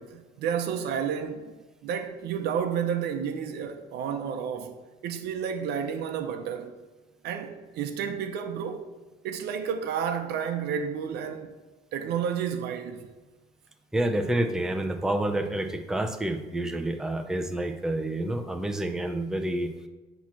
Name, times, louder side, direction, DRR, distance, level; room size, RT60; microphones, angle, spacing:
voice 1, 0.0-1.5 1.8-6.8 7.2-8.9 9.2-11.6 11.9-13.1, right 7 dB, 75° right, 0.7 m, -31 dB
voice 2, 13.9-19.7, right 1 dB, 5° right, 0.6 m, -28 dB
8.1 x 3.1 x 5.9 m
cardioid pair, 110°, 17 cm